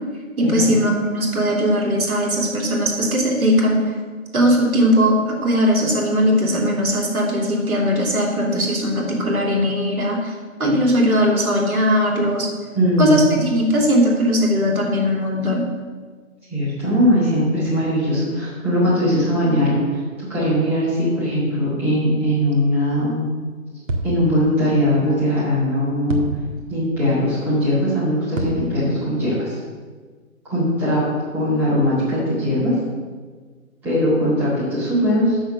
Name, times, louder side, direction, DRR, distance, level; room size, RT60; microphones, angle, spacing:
voice 1, 0.4-3.8 4.3-10.3 10.6-12.5 13.0-15.6, equal, 80° right, -1 dB, 3.2 m, -19 dB
voice 2, 12.7-13.5 16.5-20.0 20.3-23.3 24.0-26.2 26.7-29.6 30.4-31.0 31.3-32.7 33.8-35.4, equal, 5° right, -13 dB, 2.1 m, -20 dB
sound 1, 23.9-24.5 26.1-26.9 28.3-29.2, right 2 dB, 60° right, 1.8 m, -28 dB
7.9 x 6.3 x 6.6 m, 1.5 s
hypercardioid pair, 170°, 42 cm